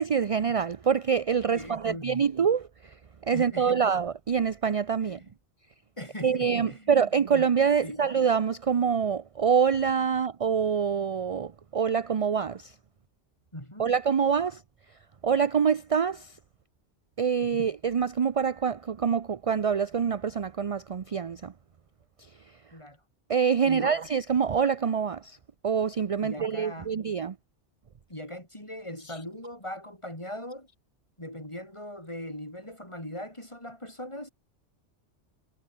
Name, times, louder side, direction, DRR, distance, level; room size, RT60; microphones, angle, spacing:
voice 1, 0.0-2.7 3.3-5.2 6.2-12.6 13.8-14.6 15.2-16.3 17.2-21.5 23.3-25.4 25.6-27.3, right 6 dB, 40° right, 0.5 m, -25 dB
voice 2, 1.5-2.3 3.3-3.8 5.0-5.2 6.0-6.9 7.8-8.0 13.5-13.9 17.5-17.7 22.7-23.0 23.6-24.0 26.2-26.9 28.1-30.7 31.2-34.3, left 1 dB, 25° left, 6.5 m, -40 dB
omnidirectional pair, 1.2 m